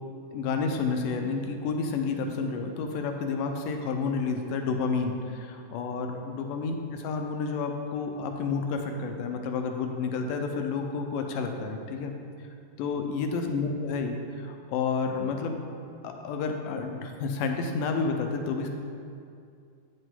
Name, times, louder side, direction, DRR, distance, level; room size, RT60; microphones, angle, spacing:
voice 1, 0.3-12.1 12.8-15.6 16.0-18.7, left 4 dB, 80° left, 4 dB, 2.2 m, -30 dB
8.9 x 8.2 x 3.7 m, 2.4 s
omnidirectional pair, 4.0 m